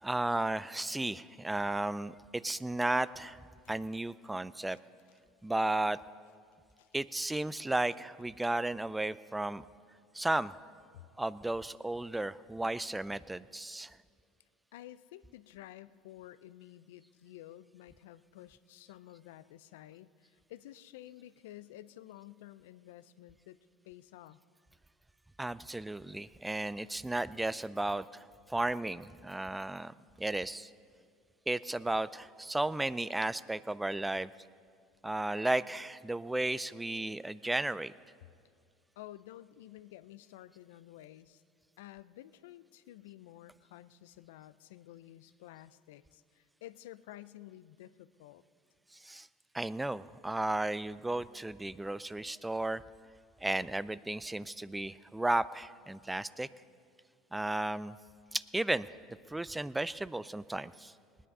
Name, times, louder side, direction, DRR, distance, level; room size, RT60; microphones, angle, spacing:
voice 1, 0.0-3.4 3.7-4.8 5.4-6.0 6.9-9.7 10.1-10.6 11.2-14.0 25.4-30.7 31.5-34.3 35.0-37.9 48.9-49.3 49.5-52.8 53.4-56.5 57.3-58.0 58.3-58.9 59.3-60.9, right 2 dB, 10° right, 18 dB, 0.4 m, -34 dB
voice 2, 14.7-23.6 23.8-24.4 39.0-41.4 41.8-48.4, left 14 dB, 85° left, 15 dB, 0.4 m, -52 dB
19.5 x 10.0 x 5.4 m, 2.3 s
hypercardioid pair, 85°, 0 cm